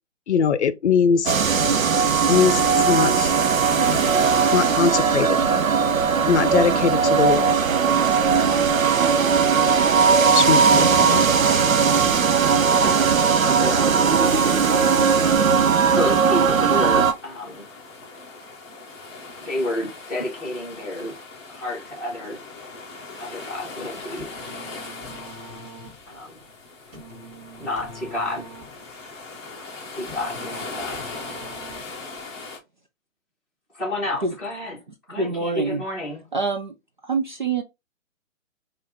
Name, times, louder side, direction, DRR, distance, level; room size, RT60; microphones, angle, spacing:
voice 1, 0.3-1.3 2.3-3.3 3.7-4.0 4.5-5.4 6.2-7.5 10.3-11.2, left 6 dB, 60° left, 0.6 m, -21 dB
sound 1, 1.3-17.1, right 6 dB, 90° right, 0.8 m, -18 dB
voice 2, 12.4-13.9 15.9-17.6 19.4-21.1 21.5-22.4 23.2-24.3 26.1-26.4 27.6-28.5 29.9-31.0 33.7-34.8 35.1-36.2, left 1 dB, ahead, 1.2 m, -30 dB
sound 2, 16.1-32.6, left 3 dB, 20° left, 0.7 m, -39 dB
sound 3, 24.2-32.2, right 1 dB, 15° right, 1.4 m, -44 dB
voice 3, 35.2-35.8 36.3-36.7 37.0-37.6, right 4 dB, 40° right, 0.4 m, -25 dB
4.4 x 2.5 x 3.5 m
hypercardioid pair, 160°, 40 cm